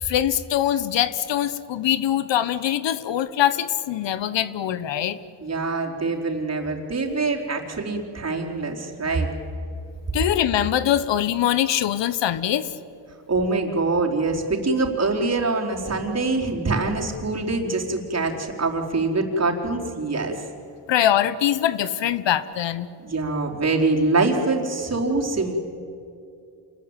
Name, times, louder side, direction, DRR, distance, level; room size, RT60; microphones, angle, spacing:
voice 1, 0.0-5.2 10.1-12.7 20.9-22.9, left 11 dB, 75° left, 15 dB, 1.2 m, -23 dB
voice 2, 5.4-9.3 13.3-20.3 23.0-25.6, right 3 dB, 35° right, 0 dB, 4.6 m, -24 dB
27.5 x 20.5 x 9.2 m, 2.6 s
cardioid pair, 85°, 44 cm